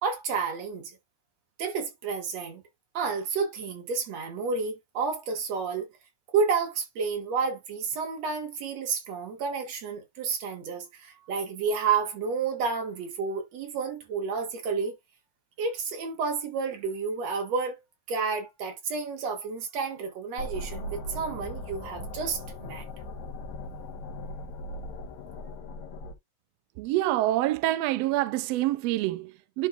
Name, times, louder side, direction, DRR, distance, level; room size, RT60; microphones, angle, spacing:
voice 1, 0.0-0.9 1.6-2.6 2.9-5.9 6.3-14.9 15.6-17.8 18.1-22.8, right 5 dB, 60° right, 2.8 m, -30 dB
sound 1, 20.4-26.1, left 1 dB, 70° left, 2.7 m, -38 dB
voice 2, 26.8-29.7, right 15 dB, 80° right, 1.5 m, -26 dB
11.0 x 4.5 x 2.4 m
omnidirectional pair, 3.4 m